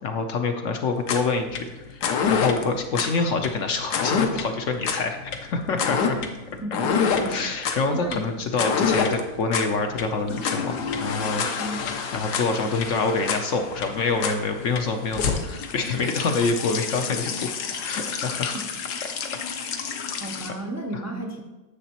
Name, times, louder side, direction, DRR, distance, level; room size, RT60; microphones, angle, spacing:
voice 1, 0.0-6.2 7.2-11.4 12.1-17.6 17.8-18.5 20.9-21.0, left 4 dB, 60° left, 5 dB, 0.8 m, -26 dB
sound 1, 1.0-20.5, left 6 dB, 85° left, 1.4 m, -27 dB
voice 2, 6.6-7.4 7.9-8.3 8.6-9.0 11.6-11.9 18.5-18.6 20.2-21.4, right 1 dB, 25° right, 0 dB, 0.3 m, -33 dB
9.8 x 7.1 x 2.9 m, 1.1 s
omnidirectional pair, 1.7 m